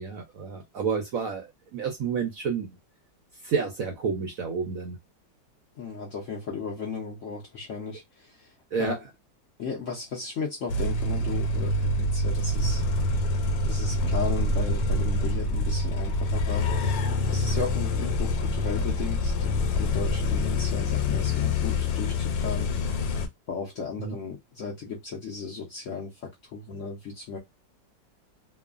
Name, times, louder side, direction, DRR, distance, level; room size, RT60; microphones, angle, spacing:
voice 1, 0.0-1.5 1.7-2.7 3.4-5.0 8.7-8.9 24.0-24.1, right 6 dB, 70° right, 0.8 m, -29 dB
voice 2, 5.8-8.9 9.6-12.8 13.6-16.7 17.3-22.7 23.5-27.4, left 5 dB, 65° left, 0.8 m, -35 dB
sound 1, 10.7-23.3, left 2 dB, 80° left, 1.3 m, -26 dB
3.0 x 2.1 x 2.4 m
omnidirectional pair, 1.9 m